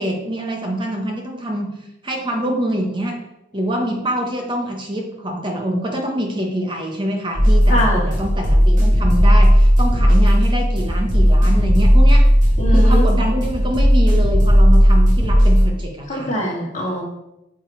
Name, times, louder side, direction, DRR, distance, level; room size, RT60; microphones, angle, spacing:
voice 1, 0.0-1.7 2.0-3.2 3.5-12.3 12.7-16.3, equal, 25° right, 1 dB, 1.2 m, -25 dB
sound 1, 7.3-15.6, equal, 40° right, 2.9 m, -14 dB
voice 2, 7.7-8.0 10.0-10.2 12.6-13.3 16.1-17.0, equal, 35° left, -3 dB, 2.8 m, -23 dB
9.1 x 7.4 x 4.6 m, 0.91 s
head